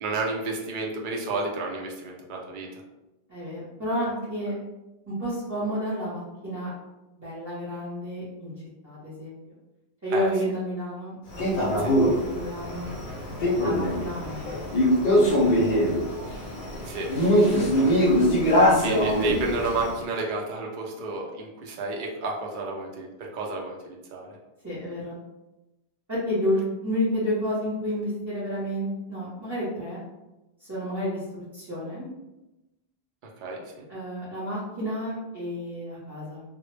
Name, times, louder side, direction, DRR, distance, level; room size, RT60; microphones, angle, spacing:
voice 1, 0.0-2.8 10.1-10.3 11.8-11.9 14.2-14.4 16.8-17.1 17.5-18.1 18.7-24.4 33.2-33.9, right 3 dB, 60° right, 0 dB, 0.6 m, -32 dB
voice 2, 3.3-4.5 5.1-6.7 7.1-8.5 8.8-9.4 10.0-12.9 13.6-14.6 14.9-16.0 18.6-19.1 24.6-25.2 26.1-30.0 30.6-32.1 33.9-36.4, equal, 20° right, -11 dB, 0.6 m, -31 dB
Male speech man speaking, 11.4-19.9, equal, 55° left, 0.6 m, -22 dB
2.1 x 2.0 x 3.1 m, 0.99 s
omnidirectional pair, 1.1 m